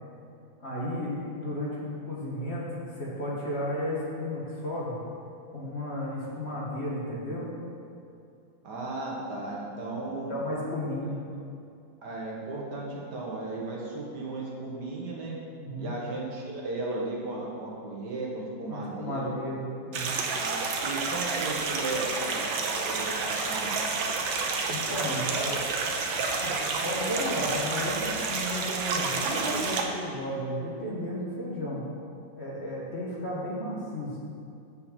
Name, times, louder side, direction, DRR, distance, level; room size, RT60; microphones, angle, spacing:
voice 1, 0.6-5.0 5.5-7.5 10.3-11.2 15.6-15.9 18.7-20.2 24.7-25.7 26.4-26.5 26.8-31.9 32.3-34.2, left 1 dB, 35° left, -6 dB, 1.6 m, -33 dB
voice 2, 8.6-10.4 12.0-15.4 15.8-19.3 20.4-22.6 22.8-23.7, right 2 dB, 60° right, -4 dB, 1.8 m, -35 dB
sound 1, 19.9-29.8, right 4 dB, 90° right, 1.6 m, -30 dB
6.7 x 5.6 x 7.2 m, 2.5 s
omnidirectional pair, 2.1 m